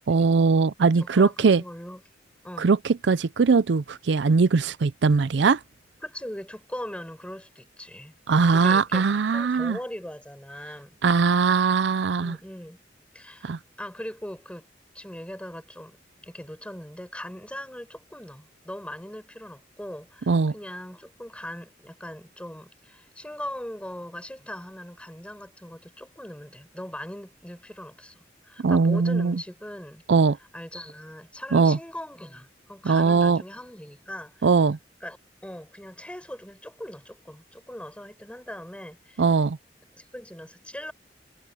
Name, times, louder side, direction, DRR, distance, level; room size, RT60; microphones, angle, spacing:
voice 1, 0.1-1.6 2.6-5.6 8.3-9.8 11.0-12.4 13.4-13.6 20.3-20.5 28.6-29.4 30.1-30.4 31.5-31.8 32.8-33.4 34.4-34.8 39.2-39.6, right 4 dB, 70° right, 0.5 m, -20 dB
voice 2, 1.2-2.0 2.4-2.7 6.0-8.2 8.5-11.0 12.2-12.8 13.1-13.5 13.8-14.7 14.9-30.0 30.5-34.5 35.0-35.2 35.4-39.2 39.9-40.9, left 1 dB, 5° left, 5.1 m, -40 dB
head